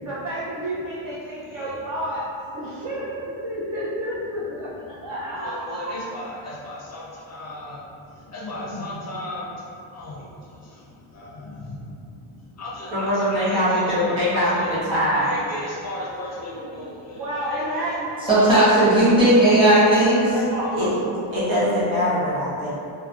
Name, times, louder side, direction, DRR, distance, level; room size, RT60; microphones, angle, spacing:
voice 1, 0.0-5.9 17.1-18.1 18.5-18.6 20.2-20.8, right 1 dB, 50° right, -9 dB, 0.5 m, -30 dB
voice 2, 5.3-14.8 15.1-17.6 18.1-18.4, left 1 dB, 35° left, -5 dB, 0.5 m, -36 dB
voice 3, 12.9-15.3 20.7-20.9 21.3-22.7, equal, 75° right, -11 dB, 1.2 m, -22 dB
voice 4, 18.2-20.3, right 1 dB, 10° right, -11 dB, 1.0 m, -15 dB
2.5 x 2.1 x 2.3 m, 2.6 s
cardioid pair, 95°, 46 cm